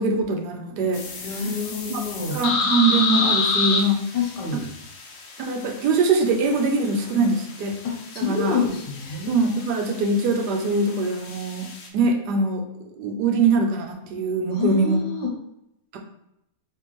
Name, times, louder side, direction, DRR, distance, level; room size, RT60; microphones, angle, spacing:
voice 1, 0.0-1.4 1.9-2.0 2.3-4.1 5.4-7.8 8.2-8.6 9.3-12.6 12.9-15.0 15.9-16.0, right 3 dB, 75° right, 3 dB, 1.2 m, -23 dB
sound 1, 0.9-11.9, left 4 dB, 70° left, 0.6 m, -30 dB
voice 2, 1.2-2.4 4.1-4.7 7.8-9.4 14.5-15.3, left 5 dB, 90° left, 0 dB, 1.5 m, -27 dB
3.5 x 3.2 x 3.0 m, 0.80 s
omnidirectional pair, 1.8 m